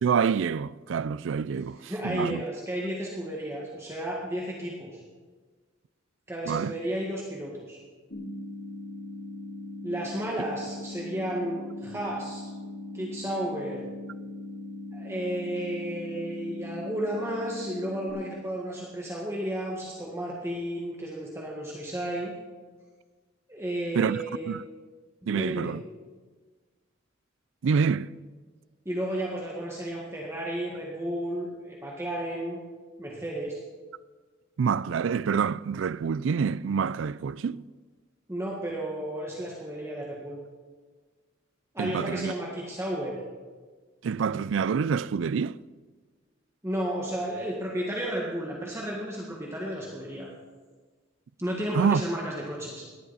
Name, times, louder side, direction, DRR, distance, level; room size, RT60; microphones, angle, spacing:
voice 1, 0.0-2.4 6.5-6.7 23.9-24.6 25.3-25.8 27.6-28.1 34.6-37.7 41.8-42.3 44.0-45.6 51.7-52.0, right 6 dB, 70° right, 0.4 m, -27 dB
voice 2, 1.9-5.0 6.3-7.8 9.8-12.5 12.9-13.8 14.9-22.3 23.5-24.5 25.2-25.7 28.9-32.6 33.0-33.6 38.3-40.4 41.7-43.1 46.6-50.3 51.4-52.9, right 1 dB, 15° right, 1.7 m, -33 dB
sound 1, 8.1-18.1, left 2 dB, 70° left, 4.3 m, -40 dB
18.0 x 11.5 x 4.2 m
head